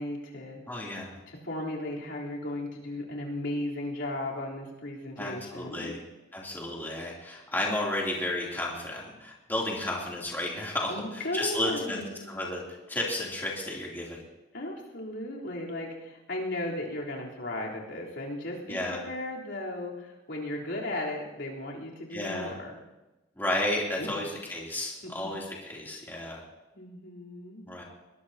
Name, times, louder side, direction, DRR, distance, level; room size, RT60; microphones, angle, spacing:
voice 1, 0.0-0.6 1.3-5.9 10.9-12.3 14.5-22.8 24.0-24.1 26.7-27.6, left 1 dB, 75° left, -4 dB, 3.7 m, -36 dB
voice 2, 0.7-1.1 5.2-6.0 6.3-12.0 12.3-12.6 12.9-14.2 18.7-19.0 22.1-22.5 23.4-26.4 27.7-27.8, left 1 dB, 10° left, -4 dB, 3.0 m, -32 dB
21.5 x 19.0 x 2.9 m, 1.1 s
head